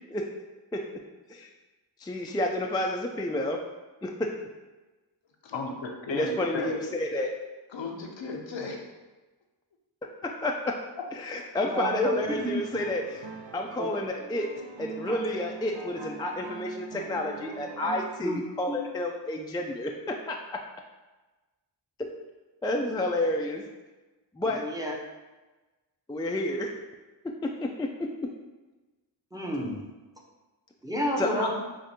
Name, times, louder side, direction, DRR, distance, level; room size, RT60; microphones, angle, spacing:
voice 1, 2.0-3.6 4.0-4.2 6.1-7.3 10.4-10.5 11.2-13.2 13.5-14.4 14.8-20.4 22.0-22.1 22.6-23.6 24.4-24.6 26.1-26.7 27.6-27.9 31.2-31.5, left 1 dB, 10° left, 1 dB, 0.3 m, -30 dB
voice 2, 5.4-6.8 7.7-8.8, left 3 dB, 80° left, 1 dB, 0.7 m, -35 dB
voice 3, 11.6-12.1 12.4-12.5 13.8-13.9 18.2-18.4 18.7-18.8 24.6-25.0 29.3-29.9 30.8-31.6, left 1 dB, 10° right, -1 dB, 0.7 m, -30 dB
sound 1, 12.0-18.3, right 5 dB, 85° right, 0.6 m, -42 dB
5.0 x 2.5 x 2.8 m, 1.2 s
cardioid pair, 45°, 45 cm